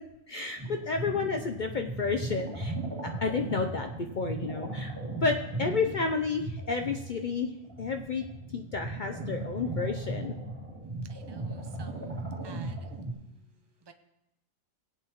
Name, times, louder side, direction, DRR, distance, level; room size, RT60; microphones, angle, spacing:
voice 1, 0.3-2.7 3.2-4.9 5.2-7.5 7.8-8.2 8.5-10.3, left 4 dB, 70° left, 5 dB, 0.4 m, -31 dB
sound 1, 0.6-13.1, right 2 dB, 10° right, 2.9 m, -37 dB
voice 2, 11.1-12.2 12.4-12.9 13.8-13.9, right 5 dB, 30° right, 7 dB, 0.4 m, -53 dB
17.0 x 8.4 x 3.0 m, 0.87 s
omnidirectional pair, 1.5 m